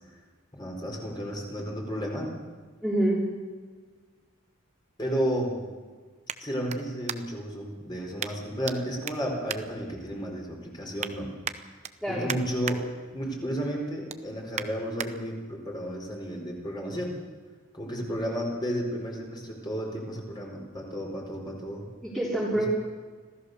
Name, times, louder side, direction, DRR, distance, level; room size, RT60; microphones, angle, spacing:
voice 1, 0.5-2.4 5.0-5.6 6.4-11.3 12.1-17.2 17.7-21.9 22.6-22.7, equal, 20° left, 0 dB, 4.4 m, -32 dB
voice 2, 2.8-3.3 12.0-12.3 22.0-22.7, right 1 dB, ahead, -6 dB, 3.5 m, -26 dB
sound 1, 3.7-7.5 8.2-8.8 9.0-10.4 10.7-11.1 11.4-12.8 13.2-13.5 13.8-15.1 15.7-15.8, right 7 dB, 35° right, 0.8 m, -38 dB
26.0 x 16.0 x 6.6 m, 1.5 s
head